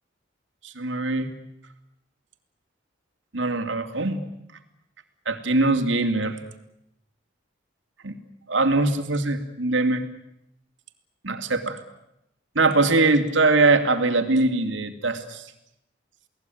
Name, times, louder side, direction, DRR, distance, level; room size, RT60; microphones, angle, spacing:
voice 1, 0.6-1.3 3.3-4.2 5.3-6.4 8.0-8.2 8.5-10.0 11.2-11.8 12.5-15.4, right 3 dB, 80° right, 6 dB, 2.7 m, -22 dB
29.0 x 18.5 x 9.3 m, 0.85 s
head